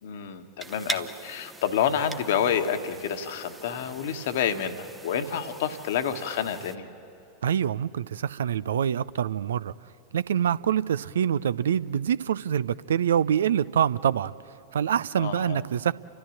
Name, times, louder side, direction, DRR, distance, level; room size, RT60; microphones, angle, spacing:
voice 1, 0.0-6.9 15.2-15.6, left 8 dB, 55° left, 1.4 m, -28 dB
sound 1, 0.6-6.8, right 2 dB, 10° right, 0.9 m, -41 dB
voice 2, 7.4-9.7 10.1-14.3 14.7-15.9, right 9 dB, 65° right, 0.4 m, -25 dB
30.0 x 13.5 x 8.7 m
figure-of-eight pair, 90°, 0 cm